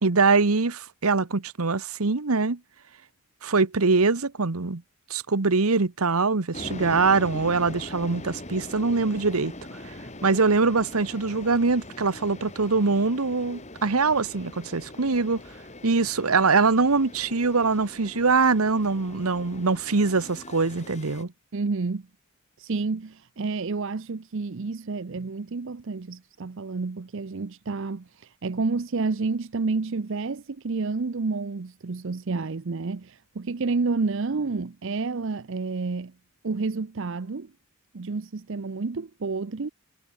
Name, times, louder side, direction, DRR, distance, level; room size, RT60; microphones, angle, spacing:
voice 1, 0.0-2.6 3.4-4.8 5.1-9.5 9.8-9.9 10.2-15.4 15.8-21.3, right 4 dB, 80° right, 1.1 m, -23 dB
sound 1, 6.5-21.2, left 1 dB, 30° left, 3.9 m, -42 dB
voice 2, 21.5-22.1 22.6-36.1 36.4-37.5 37.9-39.7, right 4 dB, 60° right, 0.6 m, -29 dB
head